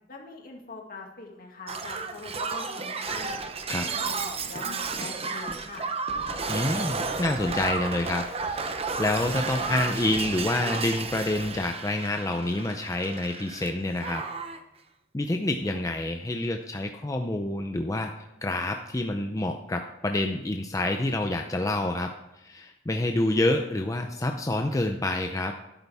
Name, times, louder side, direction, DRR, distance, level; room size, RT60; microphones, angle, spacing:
voice 1, 0.1-3.4 3.7-5.9, left 3 dB, 55° left, 0 dB, 2.2 m, -42 dB
Shatter, 1.7-13.7 14.0-14.6 15.6-15.8, right 4 dB, 35° right, 0.8 m, -32 dB
voice 2, 6.5-8.7 9.0-14.2 15.1-18.1 18.4-25.5, left 1 dB, 20° left, 4 dB, 0.6 m, -28 dB
12.5 x 11.0 x 3.5 m, 0.94 s
head